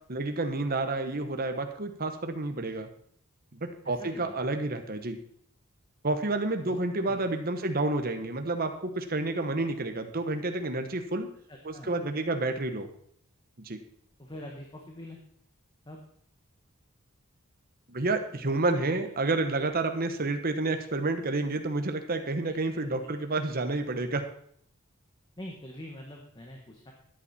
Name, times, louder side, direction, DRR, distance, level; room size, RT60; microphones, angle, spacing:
voice 1, 0.1-2.9 3.5-5.2 6.0-11.3 11.6-12.9 13.6-13.8 17.9-24.2, right 2 dB, 45° right, 6 dB, 1.2 m, -30 dB
voice 2, 3.8-4.3 6.6-6.8 7.1-7.2 11.5-11.9 14.2-15.2 15.8-16.0 18.8-19.0 22.6-23.1 25.4-26.9, left 1 dB, 20° left, 1 dB, 1.5 m, -44 dB
13.0 x 10.5 x 4.4 m, 0.63 s
head